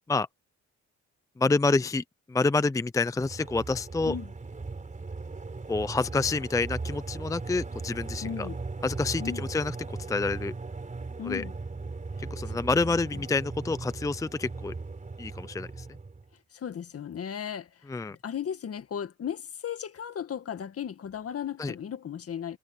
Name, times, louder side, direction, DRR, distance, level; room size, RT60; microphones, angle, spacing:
voice 1, 1.4-2.0 2.3-4.1 5.7-8.5 8.8-9.7 10.1-10.5 11.2-11.4 12.3-14.7 15.2-15.7 17.9-18.2 21.6-21.7, left 3 dB, 10° left, 0.5 m, -27 dB
sound 1, 3.2-16.3, right 3 dB, 25° right, 3.7 m, -38 dB
voice 2, 8.2-8.6 9.2-9.4 11.2-11.5 12.5-13.2 16.5-22.6, left 8 dB, 50° left, 1.9 m, -36 dB
cardioid pair, 90°, 30 cm